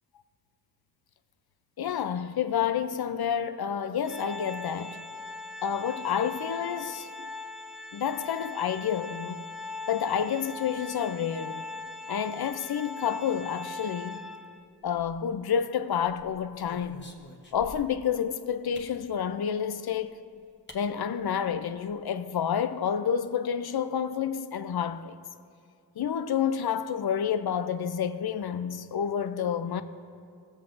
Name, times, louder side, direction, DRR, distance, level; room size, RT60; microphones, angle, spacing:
voice 1, 1.8-5.0 5.6-7.1 7.9-9.5 9.9-11.6 12.1-14.2 14.8-17.1 17.5-20.1 20.7-25.2 26.0-29.8, left 8 dB, 65° left, 0.5 m, -29 dB
Organ, 4.0-14.7, left 3 dB, ahead, 0.4 m, -40 dB
sound 1, 14.8-15.5 16.1-18.1 18.7-19.0 20.1-20.2 20.7-20.8 21.2-21.3 21.5-21.9, left 1 dB, 25° left, 1.1 m, -49 dB
16.5 x 7.2 x 2.6 m
cardioid pair, 45°, 42 cm